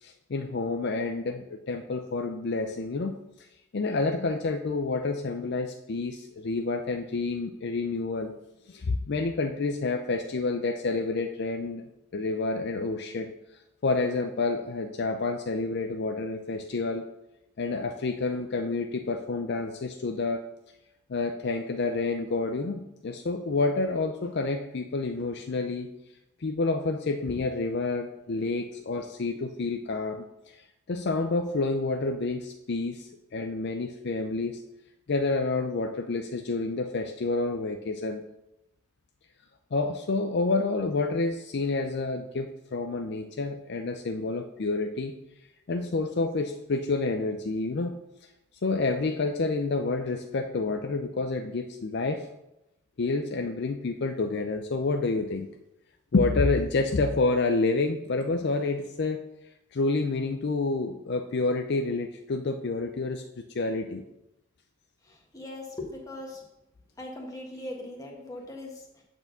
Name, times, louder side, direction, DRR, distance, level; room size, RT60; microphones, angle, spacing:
voice 1, 0.0-3.5 3.7-8.3 8.7-11.9 12.1-13.3 13.8-17.1 17.6-20.5 21.1-25.9 26.4-34.6 35.1-38.2 39.7-45.2 45.7-48.0 48.6-52.3 53.0-55.5 56.1-59.3 59.7-64.0, left 3 dB, 55° left, 6 dB, 0.5 m, -29 dB
voice 2, 65.0-66.4 67.0-69.0, left 1 dB, 15° left, -1 dB, 1.5 m, -40 dB
8.4 x 4.5 x 6.6 m, 0.91 s
head